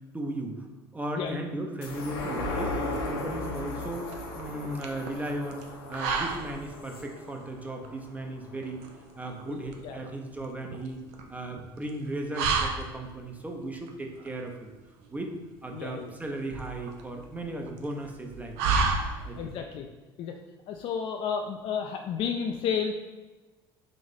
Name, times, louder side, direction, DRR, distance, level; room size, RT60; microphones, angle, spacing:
voice 1, 0.1-0.7 0.9-8.8 9.2-11.0 11.3-14.7 15.1-15.4 15.6-18.7 19.3-19.4, right 1 dB, 10° right, 2 dB, 0.6 m, -36 dB
sound 1, 1.8-8.6 9.0-9.1, left 2 dB, 80° left, 0.7 m, -36 dB
sound 2, 2.6-19.6, right 4 dB, 65° right, 0.5 m, -34 dB
voice 2, 9.5-10.0 15.7-16.1 19.4-19.9 20.2-20.3 20.7-22.9, left 7 dB, 50° left, 3 dB, 0.4 m, -32 dB
3.9 x 2.6 x 3.4 m, 1.2 s
hypercardioid pair, 70°, 12 cm